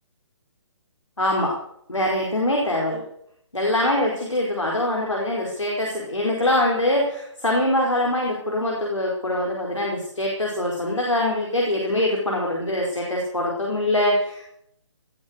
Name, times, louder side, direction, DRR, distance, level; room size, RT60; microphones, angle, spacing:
voice 1, 1.2-1.5 1.9-3.0 3.5-14.6, left 1 dB, 85° left, -2 dB, 4.9 m, -23 dB
18.5 x 8.6 x 8.1 m, 0.70 s
figure-of-eight pair, 140°, 15 cm